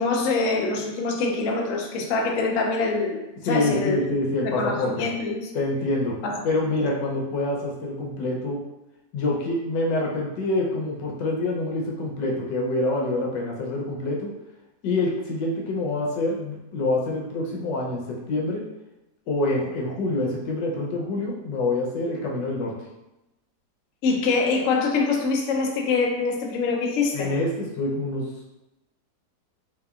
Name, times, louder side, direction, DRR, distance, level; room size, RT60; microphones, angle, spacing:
voice 1, 0.0-3.2 3.5-4.0 4.4-5.5 6.2-6.4 6.8-6.9 24.0-27.3, left 4 dB, 70° left, 1 dB, 0.7 m, -24 dB
voice 2, 3.4-5.1 5.5-6.1 6.4-8.6 9.1-14.3 14.8-18.6 19.3-22.7 27.1-28.3, left 2 dB, 85° left, -1 dB, 1.4 m, -26 dB
4.0 x 2.9 x 2.4 m, 0.95 s
omnidirectional pair, 1.9 m